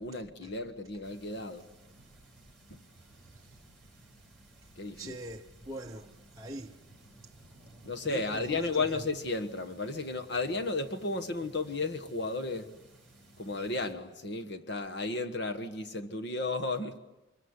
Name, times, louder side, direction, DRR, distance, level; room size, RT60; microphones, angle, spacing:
voice 1, 0.0-1.6 2.7-2.8 4.8-5.2 7.8-12.7 13.4-17.0, left 3 dB, 55° left, 1.5 m, -34 dB
sound 1, 1.0-13.9, right 2 dB, ahead, 5.9 m, -57 dB
voice 2, 3.2-3.6 5.0-6.8 8.0-9.0, right 1 dB, 15° right, 1.0 m, -43 dB
25.5 x 23.5 x 9.7 m
head